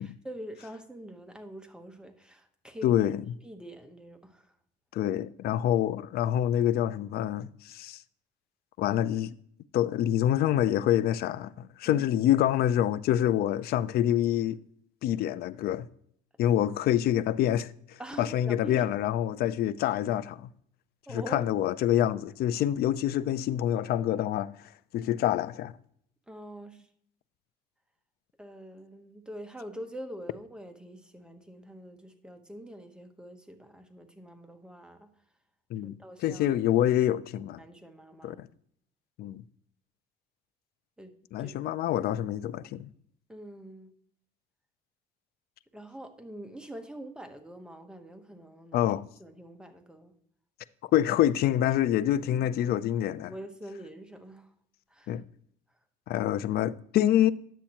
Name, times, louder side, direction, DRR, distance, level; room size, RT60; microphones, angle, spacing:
voice 1, 0.0-2.9 3.4-4.5 11.8-12.3 18.0-18.9 21.1-21.5 26.3-26.9 28.4-35.1 35.8-36.5 37.6-38.4 41.0-41.1 41.4-41.5 43.3-43.9 45.7-48.9 49.2-50.1 51.7-51.8 53.2-54.5 54.9-55.1, right 1 dB, 5° right, 0.9 m, -44 dB
voice 2, 2.8-3.2 4.9-8.0 8.8-9.4 9.7-14.6 15.0-15.9 16.4-20.5 21.1-24.5 24.9-25.7 35.7-37.6 38.2-38.4 39.2-39.4 41.3-42.9 48.7-49.0 50.8-53.3 55.1-55.2 56.1-57.3, left 11 dB, 65° left, 0.4 m, -26 dB
10.0 x 7.3 x 2.9 m
cardioid pair, 110°, 17 cm